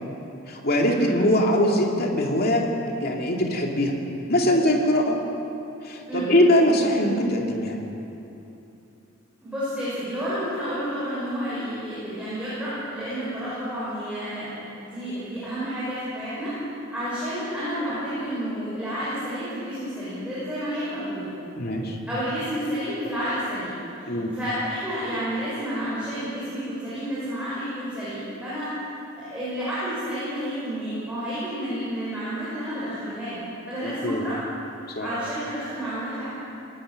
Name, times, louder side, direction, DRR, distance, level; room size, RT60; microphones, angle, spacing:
voice 1, 0.5-2.7 3.0-3.9 4.3-5.2 5.8-7.8 21.6-22.0 24.1-24.3 33.8-34.2 34.9-35.1, left 1 dB, 45° left, 0 dB, 2.5 m, -22 dB
voice 2, 9.4-16.5 16.9-21.3 22.1-28.7 29.2-33.4 33.7-34.4 35.0-36.3, equal, 5° right, -12 dB, 6.9 m, -30 dB
21.5 x 19.5 x 6.5 m, 2.9 s
head